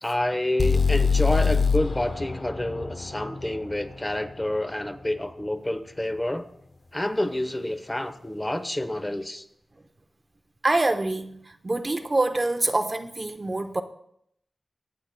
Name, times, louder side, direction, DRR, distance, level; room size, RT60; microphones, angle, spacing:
voice 1, 0.0-6.5 6.9-9.4, left 1 dB, 20° left, 0.9 m, -28 dB
sound 1, 0.6-4.5, left 5 dB, 55° left, 0.6 m, -25 dB
voice 2, 10.6-13.8, right 2 dB, 35° right, 0.7 m, -25 dB
22.5 x 8.7 x 2.2 m
cardioid pair, 60°, 0 cm